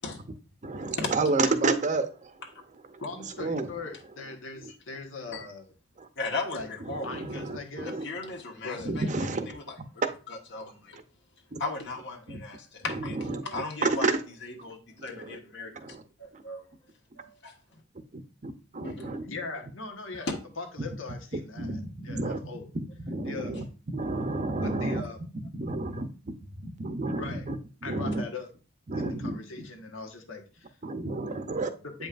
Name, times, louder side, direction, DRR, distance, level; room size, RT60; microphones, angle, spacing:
voice 1, 0.6-2.3 2.9-3.0 3.4-3.7 6.0-6.1 6.9-8.0 8.8-9.5 11.5-11.6 12.3-12.4 12.9-14.2 15.1-15.4 15.7-16.0 16.3-16.4 18.1-19.2 21.6-22.4 22.7-25.0 25.5-26.3 26.6-27.6 27.8-28.2 28.9-29.4 30.8-31.7, right 3 dB, 40° right, 9 dB, 0.7 m, -30 dB
voice 2, 3.0-5.7 6.5-6.7 7.0-8.0 8.6-8.9 19.3-22.7 23.2-23.6 24.6-25.2 27.2-27.5 27.8-28.5 28.9-30.8 31.8-32.1, left 4 dB, 85° left, 4 dB, 1.4 m, -40 dB
voice 3, 6.2-7.4 7.8-9.6 10.3-11.0 11.6-14.1 14.4-15.7 16.2-16.6 17.2-17.5 18.8-19.3, left 3 dB, 60° left, 1 dB, 1.3 m, -37 dB
8.2 x 5.3 x 2.5 m, 0.35 s
head